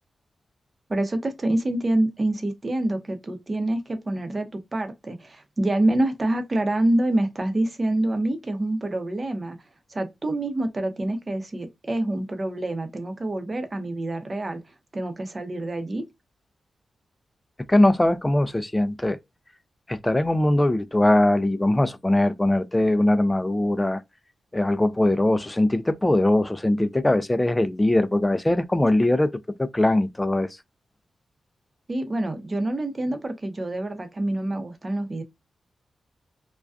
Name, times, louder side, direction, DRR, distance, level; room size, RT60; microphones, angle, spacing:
voice 1, 0.9-9.6 9.9-14.6 14.9-16.0 31.9-35.2, right 1 dB, 40° right, 0.7 m, -26 dB
voice 2, 17.7-19.2 19.9-24.0 24.5-29.3 29.6-30.6, left 1 dB, 15° left, 0.4 m, -21 dB
2.4 x 2.2 x 2.3 m
cardioid pair, 50°, 0 cm